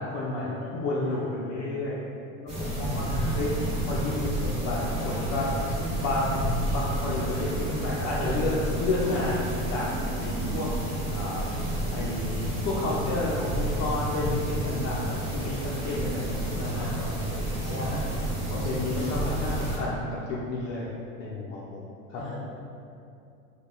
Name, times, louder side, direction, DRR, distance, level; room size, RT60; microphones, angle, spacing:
voice 1, 0.0-2.0 2.4-3.1 3.4-3.5 3.8-5.6 6.0-6.4 6.7-10.7 11.1-18.0 18.5-20.9 21.2-21.8 22.1-22.4, left 2 dB, 45° left, -6 dB, 0.4 m, -31 dB
sound 1, 2.5-19.8, right 1 dB, 40° right, 1.1 m, -30 dB
voice 2, 3.1-3.4 5.8-6.1 9.0-9.2 13.7-14.1 16.7-17.0 17.6-18.2 22.2-22.4, left 2 dB, ahead, -11 dB, 1.0 m, -42 dB
2.2 x 2.2 x 2.9 m, 2.6 s
supercardioid pair, 110°, 41 cm